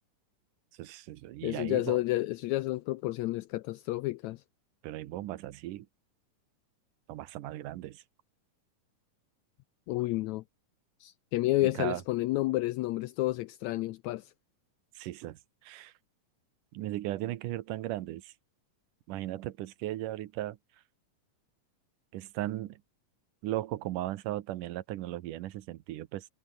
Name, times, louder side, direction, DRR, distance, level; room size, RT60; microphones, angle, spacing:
voice 1, 0.7-2.0 4.8-5.9 7.1-8.0 11.6-12.0 15.0-15.9 16.7-18.3 19.1-20.6 22.1-22.8 23.4-26.3, right 15 dB, 85° right, 2.5 m, -37 dB
voice 2, 1.4-4.4 9.9-10.4 11.0-14.3, left 18 dB, 80° left, 1.7 m, -30 dB
omnidirectional pair, 3.7 m